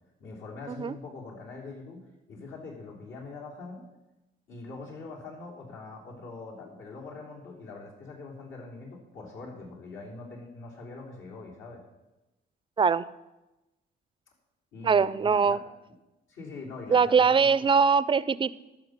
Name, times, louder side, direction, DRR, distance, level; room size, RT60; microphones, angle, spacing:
voice 1, 0.2-3.8 4.5-11.8 14.7-15.6 16.3-17.5, left 3 dB, 75° left, -2 dB, 3.5 m, -43 dB
voice 2, 14.8-15.6 16.9-18.5, right 6 dB, 25° right, 17 dB, 0.4 m, -22 dB
12.5 x 5.8 x 6.7 m, 1.0 s
cardioid pair, 90°, 20 cm